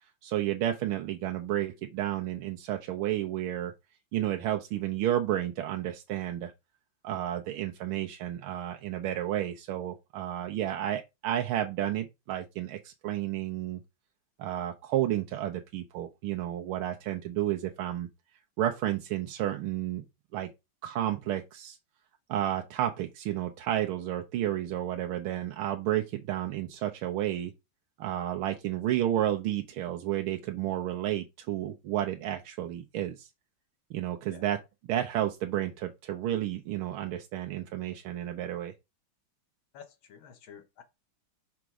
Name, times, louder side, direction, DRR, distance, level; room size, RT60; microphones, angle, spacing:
voice 1, 0.2-3.7 4.1-6.5 7.0-13.8 14.4-18.1 18.6-20.0 20.3-20.5 20.8-21.8 22.3-27.5 28.0-33.3 33.9-34.6 34.9-38.7, right 12 dB, 85° right, 1.6 m, -31 dB
voice 2, 39.7-40.8, left 7 dB, 75° left, 1.9 m, -50 dB
5.9 x 5.1 x 4.7 m
omnidirectional pair, 2.3 m